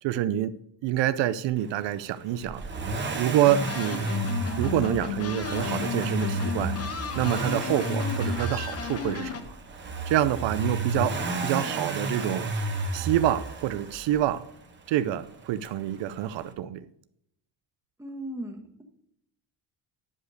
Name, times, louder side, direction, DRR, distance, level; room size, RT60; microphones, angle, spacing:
voice 1, 0.0-0.5 0.8-2.6 3.1-4.1 4.6-6.8 7.2-9.5 10.1-12.5 12.9-14.5 14.9-16.9, right 12 dB, 75° right, 0.6 m, -27 dB
Accelerating revving vroom, 2.4-14.3 15.6-15.7, right 2 dB, 25° right, 1.3 m, -32 dB
sound 1, 3.4-9.4, left 7 dB, 35° left, 0.9 m, -34 dB
voice 2, 18.0-18.8, right 1 dB, 5° right, 1.4 m, -37 dB
10.5 x 5.0 x 6.3 m
cardioid pair, 155°, 44 cm